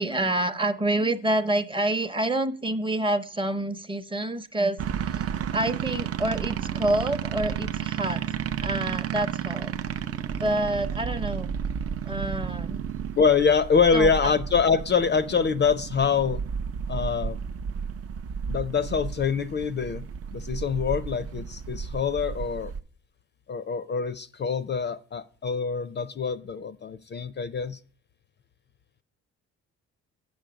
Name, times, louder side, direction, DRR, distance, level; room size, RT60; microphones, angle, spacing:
voice 1, 0.0-8.3 8.6-9.7 10.4-11.5 12.1-12.8 13.9-14.3, right 1 dB, 15° right, 8 dB, 0.7 m, -28 dB
sound 1, 4.8-22.8, right 8 dB, 50° right, 0.5 m, -32 dB
voice 2, 13.2-16.4 16.9-17.4 18.5-20.0 20.3-22.7 23.5-27.8, left 6 dB, 35° left, 12 dB, 0.4 m, -25 dB
7.9 x 6.3 x 5.0 m, 0.41 s
cardioid pair, 90°, 30 cm